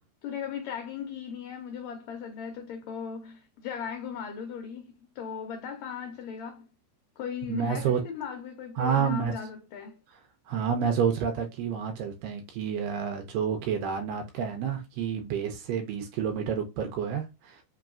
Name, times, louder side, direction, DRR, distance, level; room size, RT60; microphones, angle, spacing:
voice 1, 0.2-6.7 7.2-10.0, left 7 dB, 80° left, 1.6 m, -37 dB
voice 2, 7.5-8.0 8.8-9.3 10.5-17.6, right 7 dB, 85° right, 2.2 m, -29 dB
5.1 x 3.0 x 2.3 m
omnidirectional pair, 3.9 m